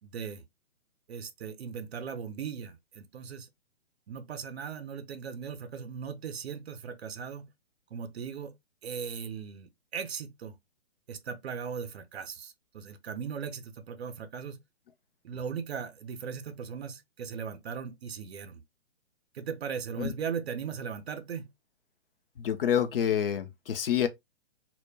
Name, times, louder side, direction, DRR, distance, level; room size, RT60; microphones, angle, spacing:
voice 1, 0.0-0.4 1.1-3.5 4.1-7.5 7.9-8.6 8.8-10.6 11.1-14.6 15.2-18.6 19.3-21.5, right 6 dB, 65° right, 0.6 m, -38 dB
voice 2, 22.4-24.1, left 9 dB, 55° left, 0.5 m, -27 dB
2.1 x 2.1 x 3.3 m
figure-of-eight pair, 130°, 34 cm